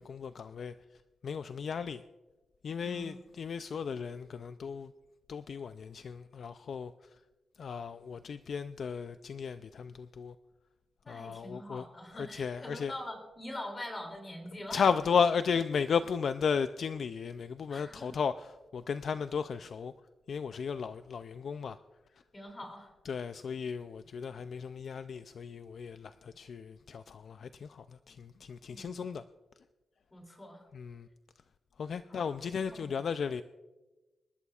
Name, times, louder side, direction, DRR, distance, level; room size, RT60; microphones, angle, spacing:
voice 1, 0.0-2.0 2.6-4.9 5.3-7.2 7.6-10.4 11.1-11.9 12.1-12.9 14.7-19.9 20.3-21.8 22.1-22.2 23.0-29.2 30.7-31.1 31.8-33.4, left 6 dB, 50° left, 0.3 m, -34 dB
voice 2, 2.8-3.2 11.0-14.8 17.7-18.1 22.3-22.9 28.7-29.0 30.1-30.7 32.1-32.2 32.7-32.9, left 1 dB, 20° left, 2.8 m, -44 dB
26.5 x 12.5 x 2.4 m
wide cardioid pair, 175°, 0 cm